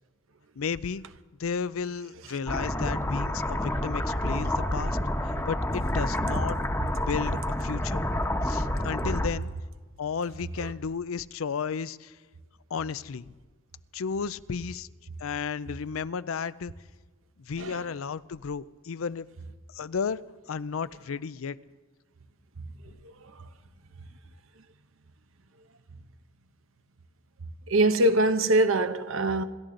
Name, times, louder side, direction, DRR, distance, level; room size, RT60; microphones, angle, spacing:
voice 1, 0.6-1.0 1.4-5.0 5.2-6.6 7.0-8.0 8.4-9.5 10.0-12.2 12.7-13.3 13.9-14.9 15.2-16.7 17.4-19.3 19.7-20.2 20.5-21.6 22.9-23.0, left 6 dB, 85° left, 0.5 m, -33 dB
sound 1, 2.5-9.3, left 1 dB, 10° left, 1.1 m, -28 dB
voice 2, 27.7-29.4, right 1 dB, 75° right, 0.9 m, -23 dB
27.5 x 13.0 x 3.9 m
head